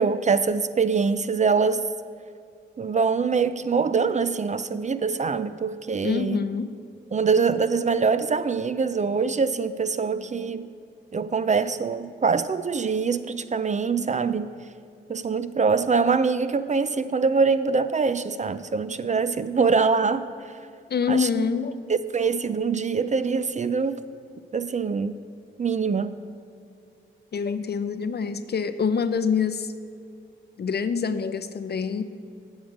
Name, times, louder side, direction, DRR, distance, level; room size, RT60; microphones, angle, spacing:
voice 1, 0.0-1.9 2.8-6.4 7.1-10.7 11.1-14.5 15.1-20.3 21.1-21.3 22.1-24.0 24.5-25.2 25.6-26.2, right 5 dB, 35° right, 13 dB, 0.4 m, -24 dB
voice 2, 6.0-6.7 20.9-21.8 27.3-29.7 30.6-32.0, left 6 dB, 55° left, 11 dB, 0.5 m, -26 dB
8.8 x 7.1 x 4.9 m, 2.4 s
cardioid pair, 50°, 21 cm